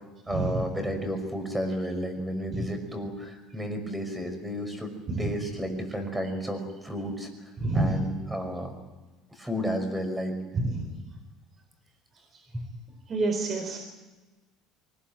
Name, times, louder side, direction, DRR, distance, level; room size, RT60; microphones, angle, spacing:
voice 1, 0.3-4.9 5.2-7.3 7.7-8.7 9.3-10.4 12.5-12.6, equal, 5° right, 6 dB, 5.6 m, -32 dB
voice 2, 7.6-8.0 10.5-10.8 13.1-13.8, right 2 dB, 30° right, 4 dB, 4.3 m, -27 dB
24.0 x 20.0 x 9.0 m, 1.2 s
cardioid pair, 130°, 0 cm